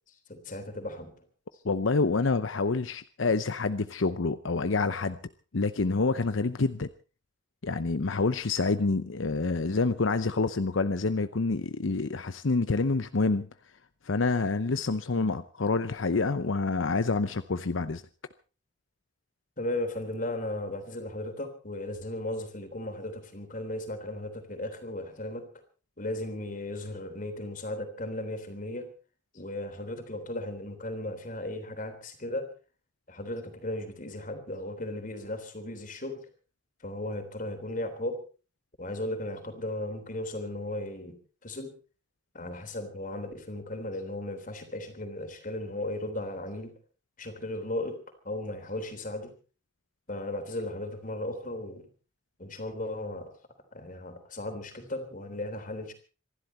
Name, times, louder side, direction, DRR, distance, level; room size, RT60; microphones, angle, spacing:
voice 1, 0.3-1.1 19.6-25.5 26.0-28.9 29.3-32.5 33.1-36.3 36.8-38.2 38.8-41.2 41.4-41.7 42.3-46.7 47.2-48.0 48.3-49.3 50.1-51.8 52.4-53.3 53.7-55.9, left 1 dB, 45° left, 8 dB, 3.5 m, -36 dB
voice 2, 1.6-5.2 5.5-6.9 7.6-13.5 14.0-18.0, left 3 dB, 85° left, 12 dB, 0.8 m, -27 dB
26.5 x 11.5 x 4.4 m, 0.37 s
head